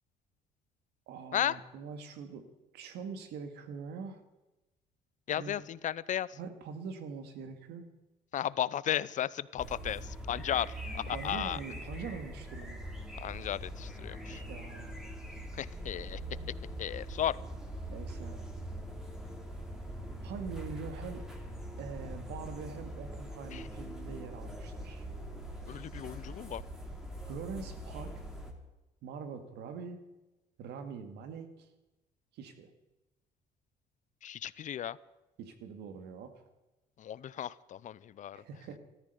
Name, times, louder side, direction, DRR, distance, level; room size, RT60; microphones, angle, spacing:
voice 1, 1.1-2.5 2.7-4.2 5.3-5.6 6.3-7.9 11.1-13.0 14.3-14.9 17.9-18.4 20.2-21.3 21.8-25.0 25.7-25.8 27.3-28.3 29.0-30.0 30.6-31.7 32.3-32.7 35.4-36.4 38.3-38.8, right 5 dB, 80° right, 8 dB, 2.0 m, -43 dB
voice 2, 5.3-6.3 8.3-11.6 13.2-14.4 15.6-16.2 16.8-17.4 23.5-23.6 25.7-26.6 34.2-35.0 37.0-38.4, left 10 dB, 45° left, 20 dB, 0.5 m, -34 dB
sound 1, 9.6-28.5, equal, 5° right, 2.7 m, -42 dB
14.0 x 13.5 x 6.8 m, 1.0 s
cardioid pair, 110°, 17 cm